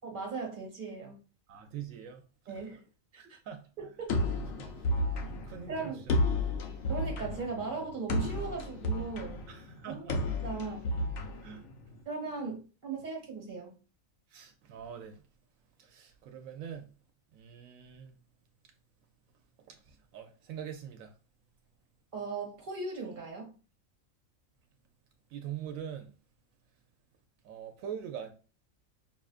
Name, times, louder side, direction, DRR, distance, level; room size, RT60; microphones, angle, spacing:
voice 1, 0.0-1.2 2.5-2.8 3.1-3.4 3.8-4.1 5.7-6.0 6.9-9.4 9.9-10.1 10.4-10.9 12.0-13.7 22.1-23.6, right 4 dB, 40° right, 1.4 m, -38 dB
voice 2, 1.5-2.6 3.2-3.7 4.6-4.9 5.4-6.2 9.5-10.2 10.5-10.6 11.4-11.6 14.3-15.2 15.8-16.9 17.3-18.2 19.7-21.1 25.3-26.1 27.4-28.3, right 9 dB, 85° right, 1.0 m, -44 dB
sound 1, 4.1-12.0, left 1 dB, 85° left, 1.2 m, -32 dB
5.5 x 2.4 x 2.4 m
omnidirectional pair, 1.4 m